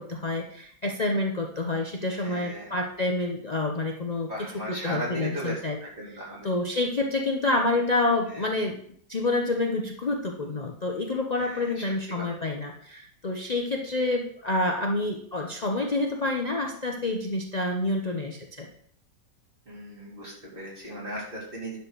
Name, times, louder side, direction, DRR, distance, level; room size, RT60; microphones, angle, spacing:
voice 1, 0.0-5.8 6.4-8.8 9.1-18.7, left 2 dB, 50° left, 2 dB, 0.4 m, -28 dB
voice 2, 2.1-2.7 4.3-6.5 8.3-8.5 11.4-12.3 19.7-21.8, right 1 dB, 25° right, -5 dB, 3.8 m, -37 dB
10.5 x 4.5 x 6.7 m, 0.63 s
omnidirectional pair, 2.0 m